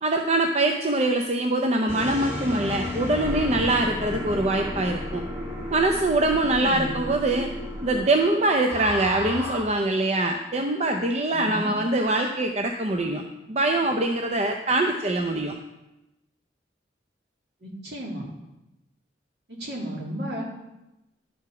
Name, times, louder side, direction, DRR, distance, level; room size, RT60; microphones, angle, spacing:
voice 1, 0.0-5.2 5.7-7.5 7.8-13.2 13.5-15.5, right 2 dB, 35° right, 3 dB, 0.6 m, -23 dB
sound 1, 1.9-9.6, left 1 dB, 15° right, 1.8 m, -33 dB
voice 2, 6.6-6.9 11.3-11.7 17.6-18.2 19.6-20.4, equal, 65° right, -3 dB, 2.6 m, -33 dB
11.5 x 4.8 x 5.9 m, 0.96 s
head